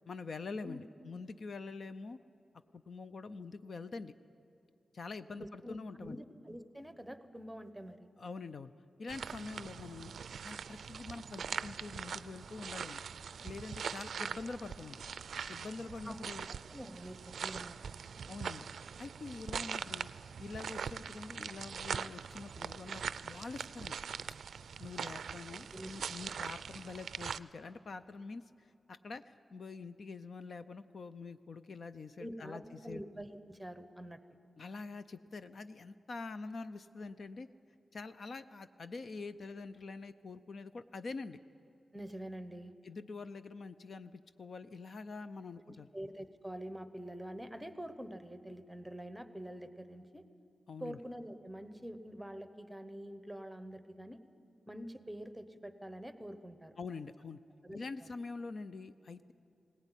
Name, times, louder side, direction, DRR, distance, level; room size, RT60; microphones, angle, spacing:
voice 1, 0.1-2.2 2.7-4.1 4.9-6.2 8.2-8.7 9.0-10.1 10.4-15.0 15.5-16.5 18.3-18.7 19.0-20.1 20.4-24.0 24.3-24.4 24.8-33.0 34.6-37.5 37.9-41.4 42.8-45.9 50.7-51.0 56.8-57.4 57.7-59.3, left 4 dB, 50° left, 11 dB, 0.5 m, -45 dB
voice 2, 5.4-8.1 16.0-16.2 16.7-18.0 25.7-25.9 32.2-34.2 41.9-42.7 45.7-50.2 50.8-54.2 54.7-56.7 57.6-57.8, equal, 5° right, 10 dB, 0.9 m, -46 dB
sound 1, 9.1-27.4, right 6 dB, 90° right, 0.4 m, -42 dB
19.5 x 18.0 x 9.9 m, 2.6 s
wide cardioid pair, 175°, 0 cm